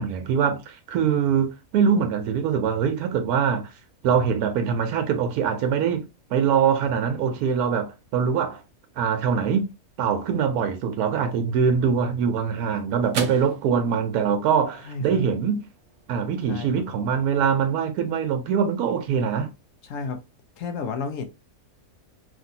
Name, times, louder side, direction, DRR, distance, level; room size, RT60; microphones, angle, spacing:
voice 1, 0.0-3.6 4.0-6.0 6.3-8.6 9.0-9.7 10.0-15.6 16.1-19.5, right 7 dB, 85° right, 1.1 m, -23 dB
sound 1, 11.9-20.4, right 5 dB, 60° right, 0.8 m, -42 dB
voice 2, 14.8-15.2 16.5-17.0 19.8-20.2 20.6-21.2, left 5 dB, 65° left, 0.9 m, -32 dB
3.1 x 2.5 x 2.7 m
omnidirectional pair, 1.5 m